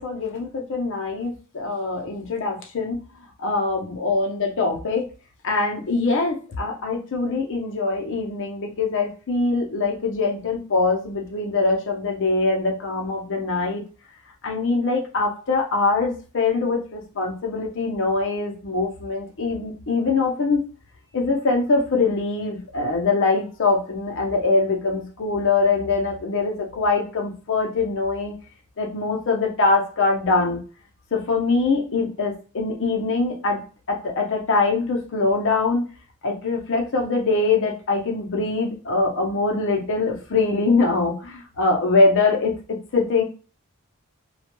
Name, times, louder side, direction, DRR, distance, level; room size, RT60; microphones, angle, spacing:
voice 1, 0.0-3.0 3.4-5.1 5.4-13.8 14.4-20.6 21.1-28.3 28.8-30.6 31.1-33.6 33.9-35.8 36.2-43.2, left 3 dB, 60° left, 1 dB, 0.6 m, -23 dB
2.2 x 2.1 x 3.0 m, 0.36 s
head